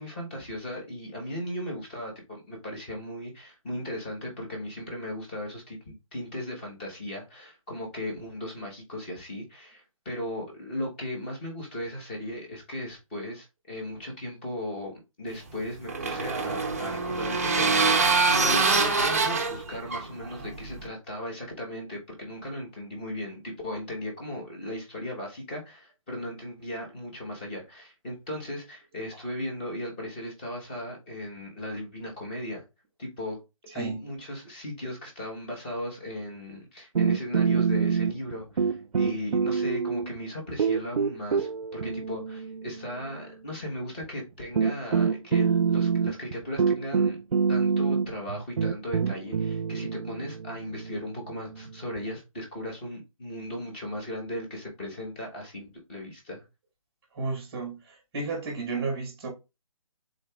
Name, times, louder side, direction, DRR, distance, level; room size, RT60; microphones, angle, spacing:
voice 1, 0.0-32.6 33.0-33.4 33.7-47.2 47.5-56.4, left 1 dB, 15° left, 1.1 m, -37 dB
sound 1, 15.3-20.9, right 4 dB, 25° right, 0.5 m, -25 dB
voice 2, 33.7-34.0 57.1-59.3, right 4 dB, 10° right, 0.9 m, -33 dB
sound 2, 36.9-38.3 38.6-40.2 40.6-43.0 44.0-44.1 44.5-52.1, right 6 dB, 90° right, 0.5 m, -26 dB
4.9 x 3.8 x 2.3 m
hypercardioid pair, 170°, 18 cm